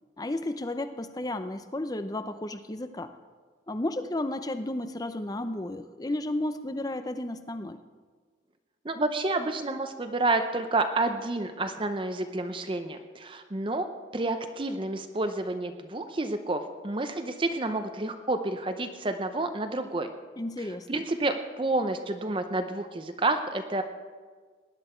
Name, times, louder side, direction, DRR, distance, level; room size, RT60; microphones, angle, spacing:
voice 1, 0.2-3.1 3.7-7.8 20.4-21.0, left 1 dB, 20° left, 10 dB, 0.5 m, -33 dB
voice 2, 8.8-13.9 14.1-20.1 20.9-23.8, right 2 dB, 25° right, 7 dB, 0.6 m, -29 dB
18.5 x 10.5 x 4.4 m, 1.5 s
head